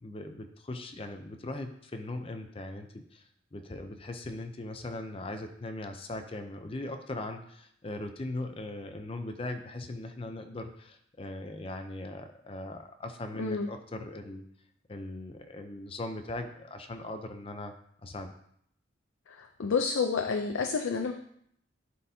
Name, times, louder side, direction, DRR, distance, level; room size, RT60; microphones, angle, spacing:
voice 1, 0.0-3.2 3.5-14.5 14.9-17.7 18.0-18.3, left 2 dB, 30° left, 6 dB, 0.5 m, -39 dB
voice 2, 19.4-21.1, left 5 dB, 85° left, 5 dB, 0.5 m, -29 dB
11.0 x 4.2 x 2.7 m, 0.68 s
head